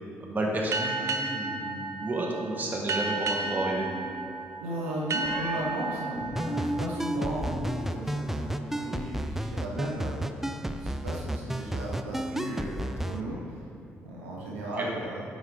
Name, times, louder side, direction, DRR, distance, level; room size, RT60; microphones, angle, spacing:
voice 1, 0.2-3.9 14.8-14.9, right 1 dB, 25° right, -2 dB, 1.5 m, -31 dB
sound 1, 0.7-8.0, right 3 dB, 45° right, 0.6 m, -34 dB
sound 2, 3.4-4.3 5.2-5.6 6.2-7.7 8.0-8.6, right 1 dB, 25° left, 1.1 m, -36 dB
voice 2, 4.6-13.6 14.0-15.2, right 1 dB, 85° right, -4 dB, 0.9 m, -36 dB
sound 3, 6.4-13.2, right 1 dB, 5° right, 0.4 m, -33 dB
9.0 x 5.2 x 3.3 m, 2.7 s
figure-of-eight pair, 40°, 7 cm